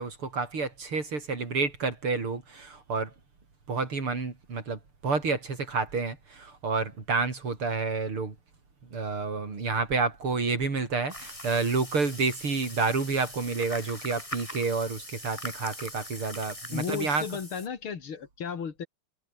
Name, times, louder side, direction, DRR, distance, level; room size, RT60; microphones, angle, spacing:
voice 1, 0.0-3.1 3.7-8.3 8.9-17.3, right 4 dB, 80° right, 5.3 m, -29 dB
sound 1, 11.1-17.7, left 1 dB, 15° left, 8.0 m, -42 dB
voice 2, 16.7-18.9, left 6 dB, 75° left, 3.1 m, -34 dB
omnidirectional pair, 2.4 m